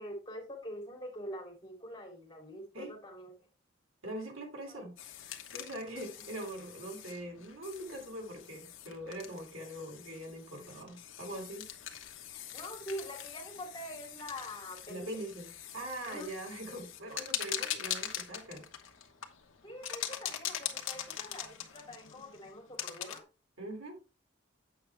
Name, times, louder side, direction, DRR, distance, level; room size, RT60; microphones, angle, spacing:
voice 1, 0.0-3.3 4.7-4.9 12.5-15.1 16.0-16.3 19.6-23.2, equal, 20° left, 2.9 m, -44 dB
voice 2, 4.0-4.9 5.5-11.7 14.9-15.5 15.7-18.7 23.6-24.0, right 1 dB, 85° right, 2.8 m, -42 dB
sound 1, 5.0-23.2, left 10 dB, 90° left, 1.1 m, -43 dB
8.3 x 6.0 x 3.3 m
head